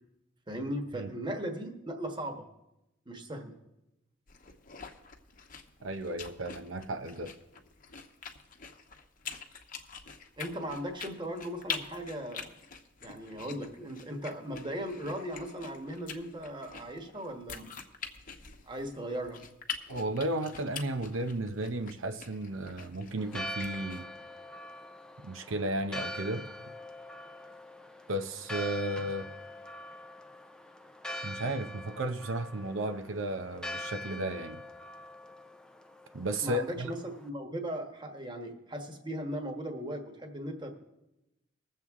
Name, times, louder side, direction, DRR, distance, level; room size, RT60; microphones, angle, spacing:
voice 1, 0.5-2.4 3.1-3.5 10.4-12.5 13.0-17.7 18.7-19.4 36.4-40.7, equal, 25° right, 5 dB, 1.3 m, -38 dB
sound 1, 4.3-24.0, left 6 dB, 45° left, 1.0 m, -45 dB
voice 2, 5.8-7.3 19.9-24.1 25.2-26.4 28.1-29.3 31.2-34.6 36.1-36.9, right 1 dB, 80° right, 7 dB, 0.7 m, -34 dB
Church bell, 23.2-37.3, left 1 dB, 5° left, 0.5 m, -43 dB
21.0 x 7.5 x 3.6 m, 0.93 s
head